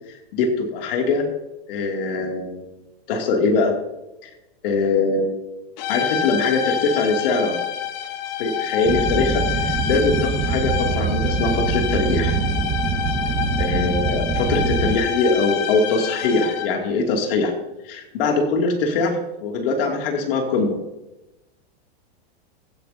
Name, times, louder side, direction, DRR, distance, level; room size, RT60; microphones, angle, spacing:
voice 1, 0.1-1.3 1.7-2.6 3.1-3.7 4.2-4.3 4.6-5.3 5.9-7.6 8.4-12.4 13.6-17.5 17.8-20.8, left 3 dB, 60° left, 2 dB, 2.6 m, -22 dB
sound 1, 5.8-16.9, left 9 dB, 45° left, 1.2 m, -27 dB
sound 2, 8.8-15.0, right 5 dB, 15° right, 0.8 m, -24 dB
15.5 x 10.0 x 2.7 m, 0.99 s
supercardioid pair, 145°, 31 cm